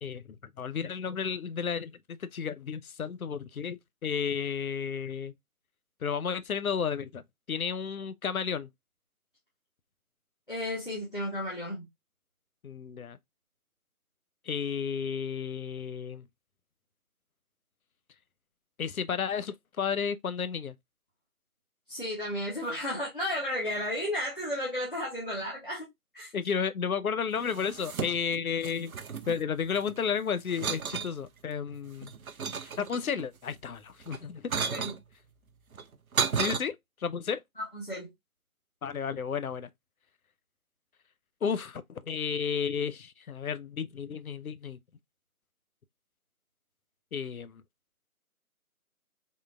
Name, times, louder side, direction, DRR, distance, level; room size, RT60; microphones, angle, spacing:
voice 1, 0.0-5.3 6.0-8.7 12.6-13.2 14.4-16.3 18.8-20.8 26.3-28.9 29.3-32.1 32.6-34.5 36.4-37.4 38.8-39.7 41.4-44.8 47.1-47.6, left 6 dB, 70° left, 0.5 m, -32 dB
voice 2, 10.5-11.9 21.9-25.9 26.1-26.3 34.7-34.9 37.6-38.1, left 1 dB, 35° left, 0.7 m, -33 dB
sound 1, 27.4-28.4 28.6-30.0 30.5-31.1 31.7-33.2 34.0-35.0 35.7-36.6, right 6 dB, 70° right, 0.5 m, -33 dB
3.6 x 2.2 x 2.4 m
figure-of-eight pair, 165°, 44 cm